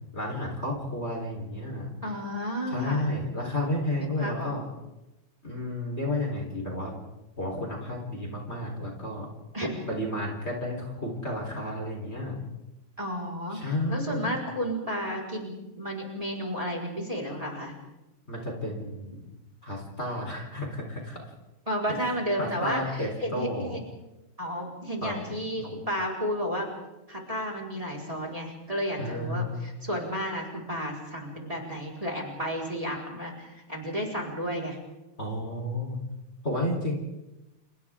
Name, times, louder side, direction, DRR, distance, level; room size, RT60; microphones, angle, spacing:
voice 1, 0.1-1.9 2.7-4.6 5.4-6.9 7.4-9.3 9.9-12.4 13.5-14.3 18.3-19.2 19.6-21.2 21.9-22.1 22.4-23.8 25.0-25.1 25.6-25.7 29.0-29.7 35.2-36.0 36.4-36.9, left 1 dB, 30° left, 0 dB, 4.3 m, -32 dB
voice 2, 2.0-3.1 4.0-4.6 9.5-9.7 13.0-17.7 21.7-23.8 24.4-26.7 27.1-34.8, equal, 15° right, -1 dB, 4.9 m, -32 dB
30.0 x 29.5 x 3.7 m, 1.0 s
omnidirectional pair, 2.4 m